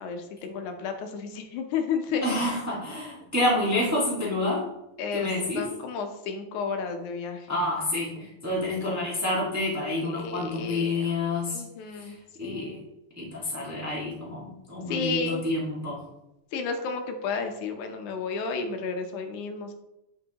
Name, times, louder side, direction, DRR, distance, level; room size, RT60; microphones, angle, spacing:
voice 1, 0.0-2.2 5.0-5.3 5.6-7.6 10.0-11.1 11.5-12.1 12.4-12.8 14.9-15.4 16.5-19.7, left 5 dB, 90° left, 5 dB, 2.4 m, -32 dB
voice 2, 2.2-4.7 5.1-5.7 7.5-11.6 12.0-12.1 12.4-12.8 13.2-16.0, left 1 dB, 10° right, -6 dB, 1.2 m, -28 dB
9.0 x 6.0 x 2.9 m, 0.90 s
omnidirectional pair, 3.4 m